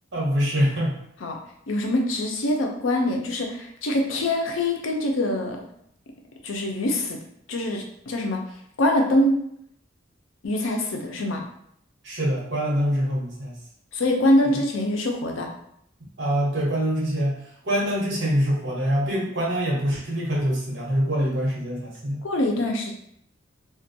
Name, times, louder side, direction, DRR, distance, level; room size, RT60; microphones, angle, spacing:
voice 1, 0.1-0.9 12.0-13.6 14.4-14.5 16.2-17.4 17.6-22.2, equal, 65° right, -4 dB, 0.9 m, -24 dB
voice 2, 1.7-5.6 6.4-7.2 7.5-8.4 8.8-9.4 10.4-11.4 13.9-15.5 22.2-22.9, left 1 dB, 75° left, 2 dB, 0.5 m, -24 dB
2.4 x 2.1 x 2.6 m, 0.71 s
head